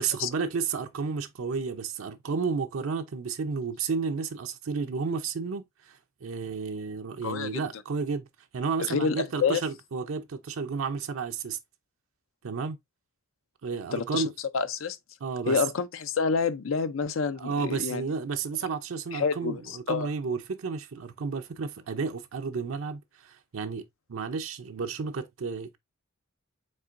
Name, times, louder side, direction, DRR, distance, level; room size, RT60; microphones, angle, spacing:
voice 1, 0.0-8.3 8.5-11.6 12.4-12.8 13.6-14.3 15.2-15.6 17.4-25.8, right 5 dB, 85° right, 0.5 m, -32 dB
voice 2, 7.2-7.6 8.8-9.6 13.9-14.2 14.5-15.0 15.5-18.0 19.1-20.1, left 5 dB, 75° left, 0.5 m, -28 dB
5.4 x 3.7 x 2.5 m
head